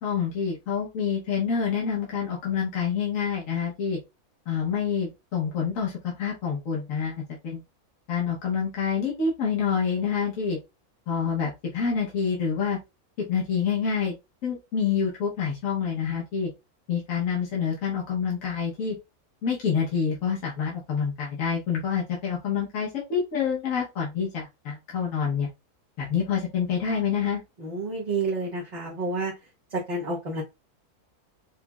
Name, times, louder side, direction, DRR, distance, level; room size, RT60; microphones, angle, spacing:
voice 1, 0.0-4.0 4.5-7.6 8.1-10.6 11.1-12.8 13.3-14.1 14.4-16.5 16.9-19.0 19.4-25.5 26.0-27.4, left 6 dB, 60° left, -4 dB, 1.5 m, -27 dB
voice 2, 27.6-29.4 29.7-30.4, right 3 dB, 35° right, -6 dB, 0.9 m, -29 dB
5.0 x 2.4 x 2.2 m, 0.23 s
omnidirectional pair, 1.6 m